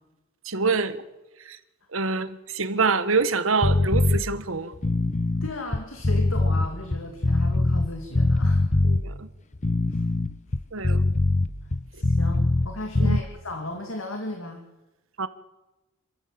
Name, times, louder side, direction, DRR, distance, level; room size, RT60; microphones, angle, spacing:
voice 1, 0.4-1.0 1.4-1.6 1.9-4.7 8.8-9.3 10.7-11.0 13.0-13.2 15.2-15.3, right 4 dB, 70° right, 1.4 m, -26 dB
sound 1, 3.6-4.2 4.7-7.9 8.2-9.0 9.5-12.7 13.0-13.2, left 2 dB, 35° left, 0.8 m, -22 dB
voice 2, 5.4-8.6 9.9-10.0 11.9-14.6, left 1 dB, 70° left, 2.6 m, -35 dB
27.0 x 14.0 x 7.7 m
head